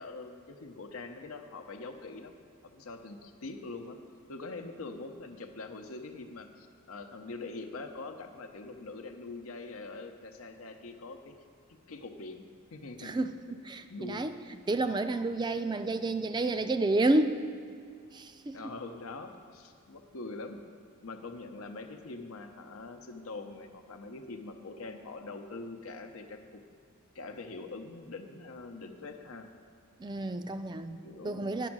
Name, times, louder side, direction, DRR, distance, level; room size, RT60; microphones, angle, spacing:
voice 1, 0.0-2.3 2.6-4.0 4.3-11.3 11.9-12.4 12.7-13.1 13.9-14.3 18.5-20.6 21.0-26.6 27.1-29.5 31.0-31.7, left 3 dB, 80° left, 6 dB, 0.8 m, -43 dB
voice 2, 13.0-14.4 14.7-17.4 18.1-18.6 30.0-31.0 31.2-31.7, right 2 dB, 20° right, 10 dB, 0.3 m, -30 dB
9.9 x 6.2 x 6.0 m, 2.3 s
head